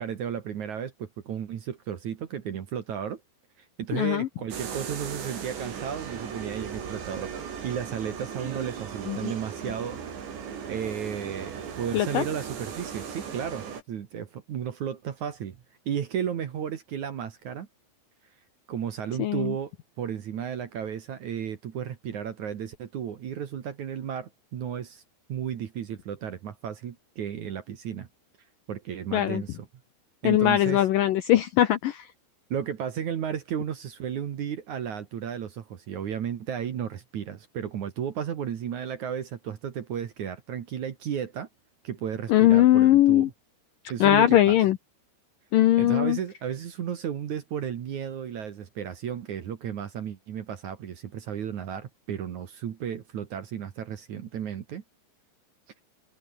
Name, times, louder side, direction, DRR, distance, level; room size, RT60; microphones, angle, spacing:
voice 1, 0.0-3.2 3.6-10.0 10.7-15.6 15.9-17.7 18.7-19.7 20.0-25.0 25.3-28.1 28.7-29.7 30.2-30.9 32.5-41.5 41.8-43.3 43.9-44.6 45.8-54.8, right 8 dB, 55° right, 2.5 m, -33 dB
voice 2, 3.9-4.3 9.1-9.3 11.9-12.2 19.2-19.5 29.1-29.4 30.2-32.1 42.3-43.3 44.0-44.8 45.5-46.2, left 13 dB, 70° left, 2.1 m, -20 dB
sound 1, 4.5-13.8, right 7 dB, 80° right, 6.6 m, -37 dB
open air
omnidirectional pair, 5.0 m